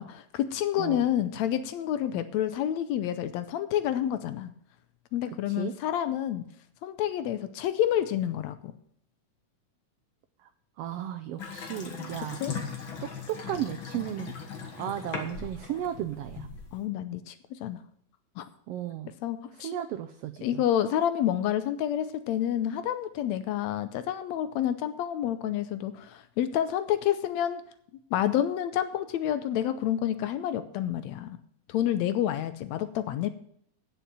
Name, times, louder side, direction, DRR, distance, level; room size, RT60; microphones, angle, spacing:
voice 1, 0.0-4.5 5.1-6.4 6.8-8.7 12.4-12.5 16.7-17.8 18.4-18.5 19.2-19.7 20.4-27.6 28.1-31.4 31.7-33.3, left 11 dB, 75° left, 11 dB, 1.8 m, -29 dB
voice 2, 10.8-12.4 13.0-14.3 14.8-16.5 18.7-19.1 19.6-20.6, right 11 dB, 85° right, 9 dB, 1.4 m, -34 dB
Water tap faucet / Sink (filling or washing) / Bathtub (filling or washing), 11.4-16.8, left 5 dB, 50° left, 1.9 m, -39 dB
9.3 x 6.9 x 7.4 m, 0.67 s
omnidirectional pair, 3.4 m